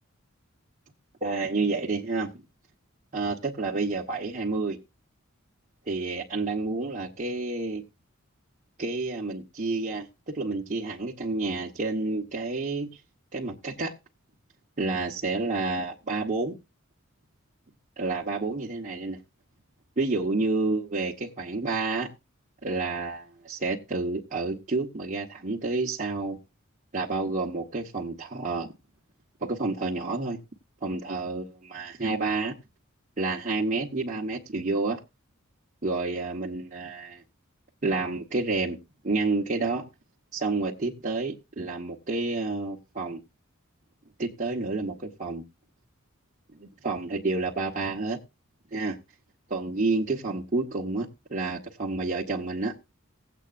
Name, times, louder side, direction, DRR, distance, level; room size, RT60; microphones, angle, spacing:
voice 1, 1.2-2.4 3.1-4.8 5.9-7.8 8.8-12.9 13.3-13.9 14.8-16.5 18.0-19.2 20.0-22.1 22.6-26.4 26.9-28.7 29.4-30.4 30.8-32.5 33.2-35.0 35.8-37.2 37.8-38.8 39.0-39.9 40.3-43.2 44.2-45.4 46.5-48.2 48.7-49.0 49.5-52.7, right 3 dB, 35° right, 1.2 m, -29 dB
17.0 x 8.2 x 2.5 m
head